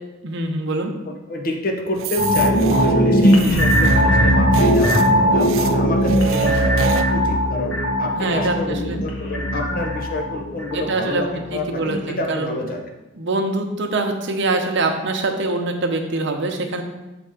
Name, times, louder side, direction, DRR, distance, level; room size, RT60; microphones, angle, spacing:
voice 1, 0.2-0.9 3.3-3.6 8.2-9.0 10.7-11.2 11.5-12.5 13.2-16.8, right 2 dB, 60° right, 4 dB, 0.8 m, -24 dB
voice 2, 1.3-2.6 2.8-5.0 5.3-12.8, left 2 dB, 45° left, 3 dB, 0.8 m, -28 dB
sound 1, 2.0-7.0, right 7 dB, 80° right, 0.4 m, -27 dB
sound 2, 2.2-11.5 11.8-12.0, equal, 80° left, 1.1 m, -19 dB
6.8 x 3.5 x 4.9 m, 1.0 s
head